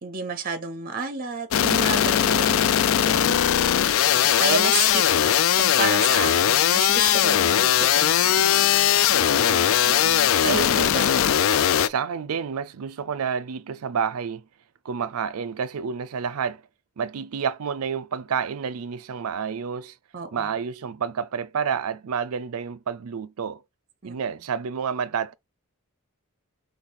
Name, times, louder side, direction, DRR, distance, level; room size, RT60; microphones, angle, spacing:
voice 1, 0.0-2.7 3.0-3.2 4.1-5.1 5.6-9.2 10.4-11.2 20.1-20.5 24.0-24.2, right 5 dB, 40° right, 0.7 m, -31 dB
sound 1, 1.5-11.9, left 10 dB, 60° left, 0.3 m, -20 dB
voice 2, 2.3-2.7 3.1-3.5 9.1-10.3 11.9-14.4 14.8-16.6 17.0-20.0 20.3-23.6 24.0-25.3, right 6 dB, 75° right, 0.5 m, -30 dB
4.1 x 3.2 x 4.0 m
head